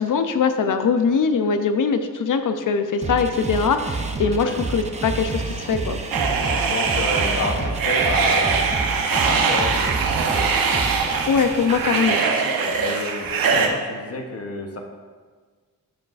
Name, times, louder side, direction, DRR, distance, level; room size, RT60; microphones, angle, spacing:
voice 1, 0.0-6.0 11.3-12.2, left 5 dB, 65° left, 8 dB, 0.6 m, -22 dB
sound 1, 3.0-12.2, right 3 dB, 20° right, 0.4 m, -29 dB
sound 2, 6.1-13.7, right 5 dB, 85° right, 0.8 m, -22 dB
voice 2, 6.7-8.5 9.1-10.1 12.8-14.8, left 2 dB, 45° left, 3 dB, 0.9 m, -29 dB
13.5 x 4.7 x 2.4 m, 1.5 s
wide cardioid pair, 160°, 34 cm